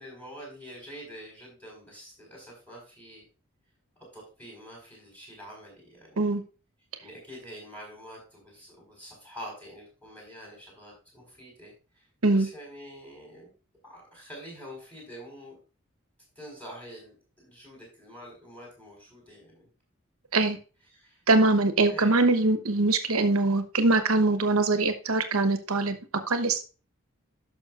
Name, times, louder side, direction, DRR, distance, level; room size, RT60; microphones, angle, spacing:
voice 1, 0.0-3.2 4.0-6.4 7.0-13.5 13.8-15.6 16.4-19.7 20.9-21.2 21.9-22.2, equal, 5° left, -2 dB, 4.4 m, -46 dB
voice 2, 21.3-26.0 26.3-26.6, right 2 dB, 90° right, 8 dB, 1.1 m, -23 dB
11.5 x 6.2 x 2.5 m, 0.34 s
head